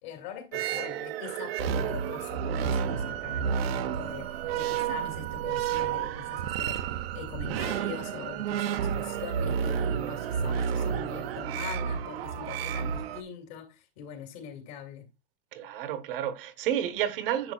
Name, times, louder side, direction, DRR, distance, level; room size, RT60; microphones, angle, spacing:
voice 1, 0.0-15.1, left 7 dB, 50° left, 2.5 m, -42 dB
sound 1, 0.5-13.2, right 8 dB, 85° right, 0.9 m, -31 dB
voice 2, 15.5-17.5, right 10 dB, 65° right, 1.2 m, -31 dB
10.5 x 6.6 x 2.3 m
supercardioid pair, 165°, 29 cm